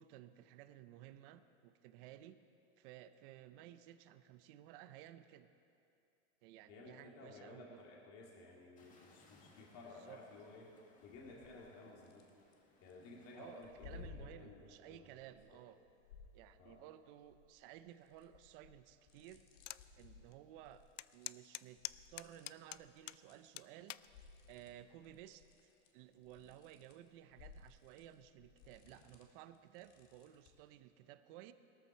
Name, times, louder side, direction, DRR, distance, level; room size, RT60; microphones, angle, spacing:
voice 1, 0.0-2.4 2.8-5.5 6.4-7.8 10.0-10.2 13.3-15.8 16.3-19.4 19.9-20.8 21.1-21.8 22.1-24.0 24.5-25.5 25.9-31.5, right 12 dB, 45° right, 12 dB, 0.7 m, -56 dB
voice 2, 6.7-10.7 11.0-12.3 12.8-15.1 15.5-15.6 16.2-16.8, left 3 dB, 40° left, -2 dB, 2.6 m, -56 dB
sound 1, 8.8-14.1, left 3 dB, 20° left, 1.9 m, -69 dB
sound 2, 11.1-11.7 12.0-12.9 13.6-16.9 17.2-23.6 23.9-30.6, left 5 dB, 55° left, 2.0 m, -60 dB
sound 3, 19.7-19.8 20.3-20.4 21.0-23.2 23.6-24.1 24.8-25.1, left 16 dB, 85° left, 0.5 m, -46 dB
18.5 x 13.5 x 4.5 m, 2.6 s
supercardioid pair, 145°, 36 cm